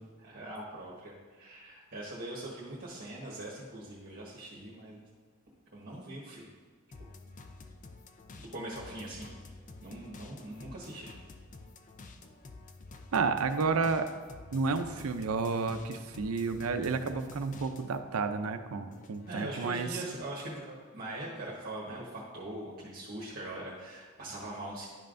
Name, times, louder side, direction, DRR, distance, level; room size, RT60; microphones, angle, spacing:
voice 1, 0.2-5.0 5.7-6.5 8.4-9.3 9.8-11.1 19.3-24.9, right 1 dB, 45° right, -5 dB, 1.2 m, -42 dB
sound 1, 6.9-18.1 18.4-19.8, left 3 dB, 35° left, 0.4 m, -50 dB
voice 2, 13.1-14.1 14.5-19.9, right 4 dB, 85° right, 8 dB, 0.5 m, -31 dB
10.5 x 5.4 x 2.6 m, 1.5 s
head